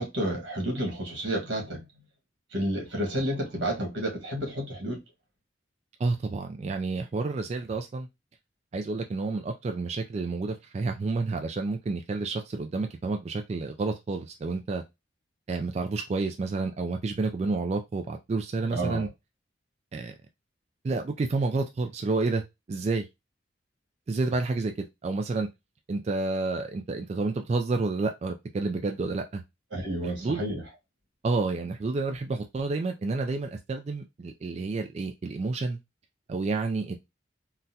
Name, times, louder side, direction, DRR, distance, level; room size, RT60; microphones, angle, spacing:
voice 1, 0.0-1.9 2.5-5.0 18.7-19.1 29.7-30.6, right 1 dB, 85° right, 1.5 m, -30 dB
voice 2, 6.0-8.1 8.7-14.8 15.5-19.1 19.9-20.1 20.8-23.1 24.1-25.5 25.9-29.4 30.0-30.4 31.2-35.8 36.3-37.0, right 3 dB, 35° right, 0.3 m, -30 dB
3.8 x 2.2 x 2.7 m
head